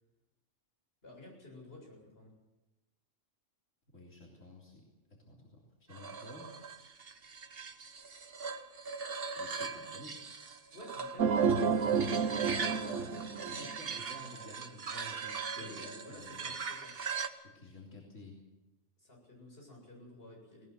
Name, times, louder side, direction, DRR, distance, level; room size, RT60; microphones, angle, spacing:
voice 1, 1.0-2.3 10.7-13.0 15.5-16.9 19.0-20.7, left 2 dB, 50° left, -1 dB, 7.9 m, -51 dB
voice 2, 3.9-4.8 5.2-6.5 9.4-10.2 12.4-16.4 17.5-18.4, left 2 dB, 85° left, -3 dB, 3.8 m, -51 dB
sound 1, 5.9-17.3, right 5 dB, 50° right, 1.4 m, -41 dB
sound 2, 11.2-14.0, right 6 dB, 85° right, 1.3 m, -30 dB
19.5 x 19.0 x 7.8 m, 1.1 s
omnidirectional pair, 1.3 m